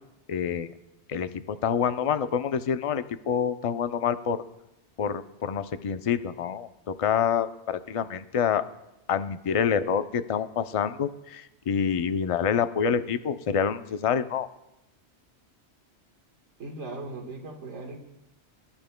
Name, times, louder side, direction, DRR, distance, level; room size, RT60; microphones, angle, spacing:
voice 1, 0.3-0.7 1.1-4.4 5.0-8.7 9.1-14.5, left 7 dB, 50° left, 11 dB, 0.4 m, -27 dB
voice 2, 16.6-18.0, right 2 dB, 85° right, 0 dB, 1.8 m, -38 dB
23.5 x 11.5 x 2.2 m, 0.93 s
omnidirectional pair, 1.2 m